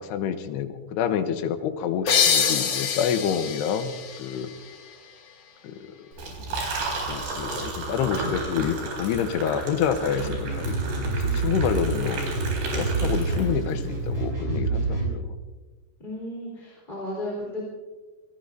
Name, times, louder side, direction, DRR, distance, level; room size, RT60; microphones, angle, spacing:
voice 1, 0.0-4.5 5.6-6.7 7.1-12.2 12.7-15.3, left 8 dB, 90° left, 8 dB, 3.0 m, -28 dB
sound 1, 2.1-5.5, left 7 dB, 55° left, 1.8 m, -26 dB
Liquid, 6.1-13.8, right 2 dB, 90° right, 6.3 m, -33 dB
sound 2, 10.1-15.1, right 3 dB, 25° right, 6.0 m, -27 dB
voice 2, 16.0-17.7, left 1 dB, 10° left, -4 dB, 3.4 m, -34 dB
26.5 x 17.0 x 2.7 m, 1.3 s
omnidirectional pair, 4.8 m